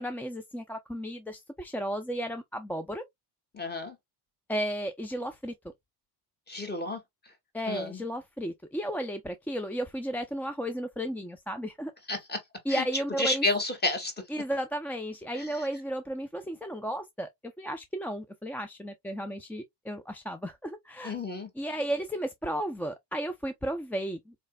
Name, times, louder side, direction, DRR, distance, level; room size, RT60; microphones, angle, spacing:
voice 1, 0.0-3.0 4.5-5.5 7.5-11.9 12.7-13.5 14.3-21.2 21.6-24.3, equal, 5° left, 0.3 m, -34 dB
voice 2, 3.5-4.0 6.5-7.0 7.7-8.0 12.1-12.4 12.7-12.8 13.2-14.1 15.3-15.7 21.0-21.5, left 2 dB, 20° left, 1.8 m, -31 dB
4.2 x 3.1 x 2.2 m
supercardioid pair, 90°, 48 cm